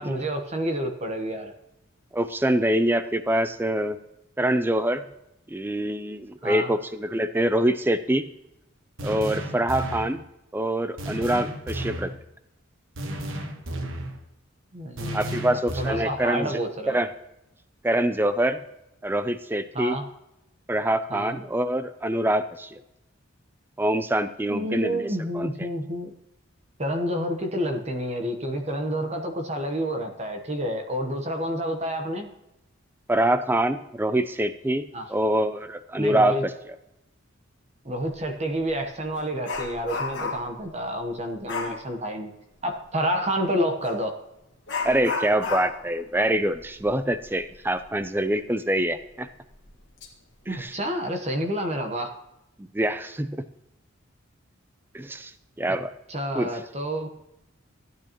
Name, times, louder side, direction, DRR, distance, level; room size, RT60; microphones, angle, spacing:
voice 1, 0.0-1.5 6.4-6.7 14.7-17.0 19.7-20.0 21.1-21.4 24.5-26.1 26.8-32.3 34.9-35.1 36.0-36.4 37.8-42.3 42.6-44.1 50.5-52.2 55.7-55.8 56.1-57.1, equal, 30° right, 5 dB, 1.0 m, -29 dB
voice 2, 2.1-4.0 4.4-5.0 5.5-8.2 9.0-10.2 10.5-12.1 15.1-16.6 16.9-17.1 17.8-18.6 19.0-19.9 20.7-22.8 23.8-25.5 33.1-34.8 35.1-36.5 41.7-41.8 44.8-49.3 50.5-50.7 52.6-53.4 54.9-55.3 55.6-55.9 56.3-56.5, right 1 dB, 10° right, 12 dB, 0.4 m, -25 dB
sound 1, 9.0-10.2 11.0-12.1 13.0-14.2 15.0-16.2, right 1 dB, 70° right, 1.3 m, -33 dB
Dog, 38.1-38.3 38.7-40.6 41.5-41.8 43.8-44.0 44.7-48.0 48.3-48.4 48.9-49.0 49.7-50.1 50.4-50.7, left 4 dB, 55° left, 1.7 m, -33 dB
15.0 x 9.3 x 3.0 m, 0.88 s
head